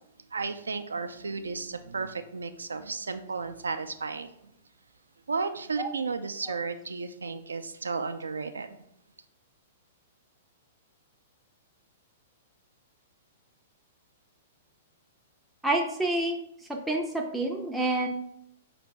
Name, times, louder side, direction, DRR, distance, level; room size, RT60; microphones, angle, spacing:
voice 1, 0.3-4.3 5.3-8.8, right 4 dB, 75° right, 9 dB, 0.3 m, -33 dB
voice 2, 15.6-16.4 16.7-18.1, right 2 dB, 5° right, 0 dB, 0.4 m, -28 dB
5.0 x 2.6 x 3.3 m, 0.76 s
figure-of-eight pair, 105°, 0 cm